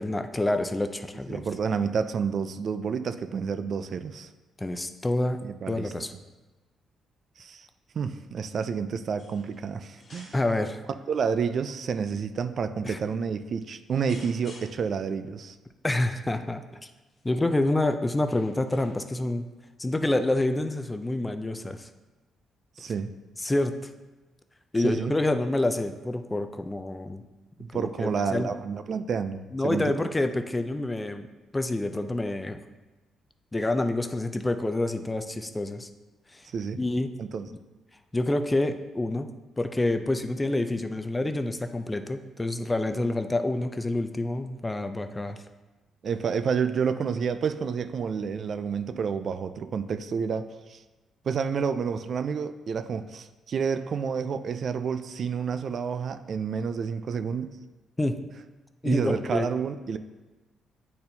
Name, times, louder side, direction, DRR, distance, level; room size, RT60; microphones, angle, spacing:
voice 1, 0.0-1.4 4.6-5.4 5.7-6.1 10.3-10.8 12.8-13.0 15.8-16.6 17.2-19.5 19.8-21.9 23.4-23.9 24.7-27.2 27.7-28.5 29.5-31.3 31.5-32.6 33.5-35.9 36.3-36.4 36.8-37.1 38.1-45.4 58.0-58.2 58.8-59.5, left 2 dB, 15° left, 8 dB, 0.4 m, -27 dB
voice 2, 1.3-4.3 5.4-5.9 7.4-7.7 7.9-10.3 11.1-15.6 22.8-23.1 24.8-25.1 27.6-30.1 36.5-36.8 37.2-37.5 46.0-50.8 51.2-57.6 58.8-60.0, right 6 dB, 55° right, 10 dB, 0.3 m, -29 dB
sound 1, 9.2-9.7 9.9-10.7 11.4-11.8 12.7-12.9 14.1-15.0 17.1-17.4 18.2-19.3 20.4-20.5, left 2 dB, 40° left, 1.3 m, -52 dB
8.5 x 4.3 x 2.7 m, 1.1 s
cardioid pair, 90°, 0 cm